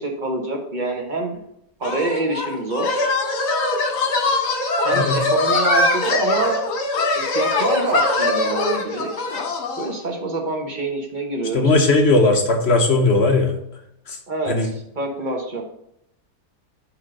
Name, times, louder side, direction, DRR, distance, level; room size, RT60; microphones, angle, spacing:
voice 1, 0.0-1.4 1.8-3.0 4.8-6.6 7.1-9.1 9.8-11.7 14.3-15.6, right 2 dB, 35° right, 1 dB, 1.0 m, -26 dB
sound 1, 1.8-9.9, left 2 dB, 75° left, 1.7 m, -22 dB
voice 2, 11.5-13.5 14.1-14.2 14.5-14.7, left 2 dB, 50° left, 4 dB, 0.9 m, -17 dB
4.9 x 4.5 x 6.1 m, 0.78 s
omnidirectional pair, 1.8 m